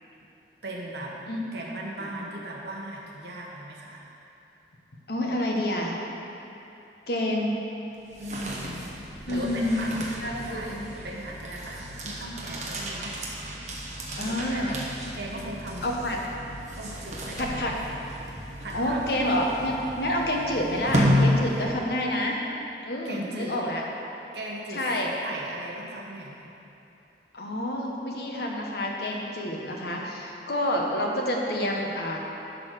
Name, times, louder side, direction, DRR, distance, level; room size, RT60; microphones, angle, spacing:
voice 1, 0.6-1.2 1.5-4.0 8.2-8.9 9.3-9.9 10.3-13.2 14.2-14.9 15.1-15.8 16.8-17.7 18.3-19.0 23.0-23.6 24.3-24.9 25.2-26.4, right 1 dB, 65° right, -2 dB, 1.3 m, -38 dB
voice 2, 5.1-6.0 7.1-7.6 9.3-10.8 14.1-14.8 15.8-16.2 17.4-17.7 18.7-22.4 22.8-23.8 24.7-25.1 27.3-32.2, left 1 dB, 60° left, -1 dB, 1.1 m, -28 dB
sound 1, 7.9-22.0, equal, 40° right, 1.2 m, -32 dB
11.0 x 4.1 x 6.5 m, 2.8 s
head